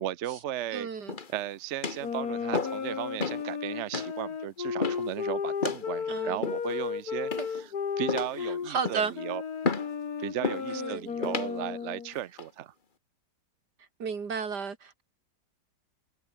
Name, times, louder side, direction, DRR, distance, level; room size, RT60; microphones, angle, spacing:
voice 1, 0.0-0.9 1.3-7.7 8.0-9.4 10.2-12.7, right 12 dB, 60° right, 0.8 m, -36 dB
voice 2, 0.7-1.2 6.1-6.5 7.4-7.5 8.4-9.1 10.7-11.1 14.0-15.0, right 5 dB, 75° right, 2.8 m, -33 dB
sound 1, 1.1-1.4 1.8-2.1 2.5-2.9 3.2-3.4 3.9-4.1 4.8-5.1 5.6-5.9 6.4-6.8 7.3-7.7 8.1-8.4 8.8-9.1 9.6-9.9 10.4-10.7 11.2-11.5 12.1-12.5, left 4 dB, 30° left, 1.5 m, -32 dB
sound 2, 2.0-8.7 9.2-12.1, left 6 dB, 65° left, 2.3 m, -34 dB
omnidirectional pair, 1.8 m